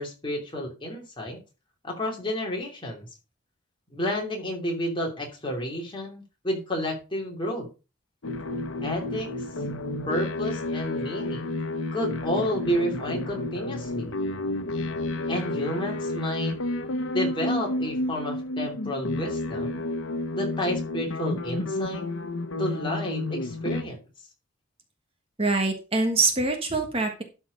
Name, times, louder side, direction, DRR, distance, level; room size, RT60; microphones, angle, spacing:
voice 1, 0.0-1.4 1.8-3.1 3.9-7.7 8.8-9.3 10.1-11.5 11.9-14.1 15.3-16.6 17.1-19.8 20.3-22.1 22.6-24.0, equal, 25° left, 0 dB, 2.9 m, -31 dB
sound 1, 8.2-23.8, left 2 dB, 80° left, 1.0 m, -31 dB
voice 2, 25.4-27.2, right 3 dB, 30° right, 4 dB, 1.4 m, -24 dB
12.5 x 4.6 x 5.2 m, 0.31 s
head